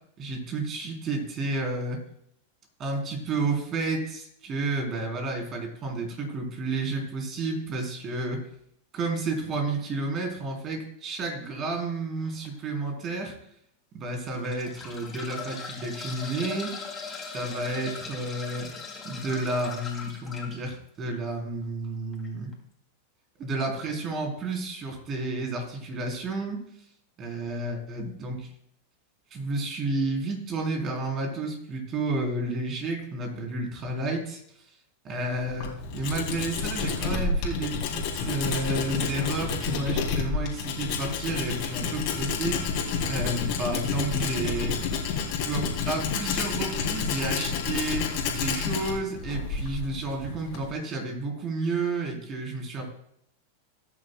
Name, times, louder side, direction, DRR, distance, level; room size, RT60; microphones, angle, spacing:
voice 1, 0.2-2.0 2.8-8.4 8.9-13.3 13.9-16.8 17.3-18.7 19.0-22.5 23.4-26.6 27.2-28.5 29.3-34.4 35.0-42.7 43.1-44.8 45.4-52.8, right 2 dB, 30° right, 1 dB, 3.7 m, -31 dB
sound 1, 12.2-12.5 13.1-13.2 14.1-20.5 22.1-22.3 22.5-22.6, left 5 dB, 15° left, 4.2 m, -39 dB
Tools, 35.3-50.7, left 5 dB, 45° left, 3.1 m, -29 dB
19.5 x 10.0 x 2.3 m, 0.72 s
figure-of-eight pair, 90°, 0 cm